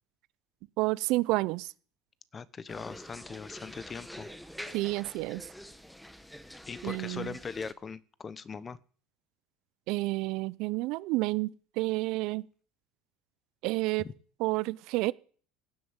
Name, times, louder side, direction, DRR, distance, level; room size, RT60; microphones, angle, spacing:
voice 1, 0.8-1.7 4.7-5.4 6.8-7.3 9.9-12.4 13.6-14.1 14.4-15.1, right 21 dB, 65° right, 0.6 m, -30 dB
voice 2, 2.3-4.3 6.7-8.8 14.0-14.1, left 5 dB, 30° left, 1.0 m, -40 dB
sound 1, 2.7-7.7, equal, ahead, 1.3 m, -46 dB
16.5 x 7.7 x 8.1 m
supercardioid pair, 90°, 0 cm